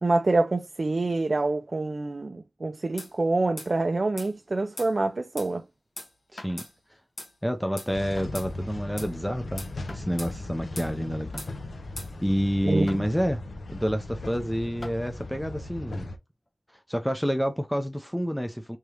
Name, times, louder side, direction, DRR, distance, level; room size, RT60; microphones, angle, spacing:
voice 1, 0.0-5.6 12.6-13.0, right 2 dB, 50° right, 0.4 m, -26 dB
sound 1, 3.0-3.1 3.6-3.7 4.2-4.3 4.8-4.9 5.4-5.5 6.0-6.1 6.6-6.7 7.2-7.3 7.8-7.9 8.3-8.5 9.0-9.1 9.6-9.7 10.2-10.4 10.8-10.9 11.4-11.5 12.0-12.1, left 1 dB, 75° left, 1.6 m, -40 dB
voice 2, 6.3-6.7 7.4-11.4 12.2-13.4 13.7-16.1 16.9-18.8, equal, ahead, 0.5 m, -28 dB
sound 2, 6.4-6.6 8.2-8.3 9.9-10.1 11.3-11.6 12.9-13.0 14.1-14.2 14.8-15.0 16.5-16.6, left 1 dB, 55° left, 1.2 m, -43 dB
sound 3, 7.9-16.2, left 2 dB, 90° left, 0.6 m, -38 dB
3.6 x 3.3 x 2.8 m
wide cardioid pair, 75°, 0 cm